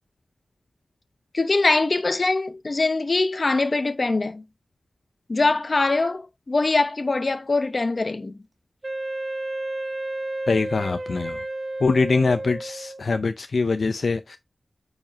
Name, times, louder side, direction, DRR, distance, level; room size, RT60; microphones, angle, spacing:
voice 1, 1.3-4.4 5.3-8.4, left 3 dB, 50° left, 0.9 m, -23 dB
Wind instrument woodwind instrument, 8.8-13.1, right 1 dB, 40° right, 1.7 m, -31 dB
voice 2, 10.5-11.4 11.8-14.4, left 4 dB, 75° left, 0.5 m, -23 dB
8.9 x 5.1 x 2.7 m
wide cardioid pair, 65°, 0 cm